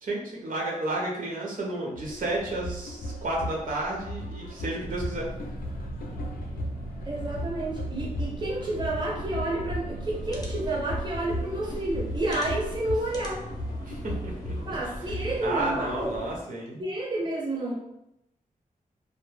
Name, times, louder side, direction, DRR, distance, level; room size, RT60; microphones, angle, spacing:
voice 1, 0.0-5.3 13.8-14.8 15.4-16.8, right 2 dB, 70° right, -2 dB, 0.6 m, -32 dB
sound 1, 1.9-15.4, equal, 90° left, 0.5 m, -36 dB
sound 2, 4.8-10.8, right 1 dB, 85° right, 1.0 m, -39 dB
voice 2, 7.1-13.4 14.6-16.2 16.8-17.7, right 2 dB, 30° right, -4 dB, 0.6 m, -30 dB
sound 3, 10.0-16.4, left 1 dB, 25° left, 0.4 m, -41 dB
2.2 x 2.1 x 3.1 m, 0.84 s
wide cardioid pair, 140°, 15 cm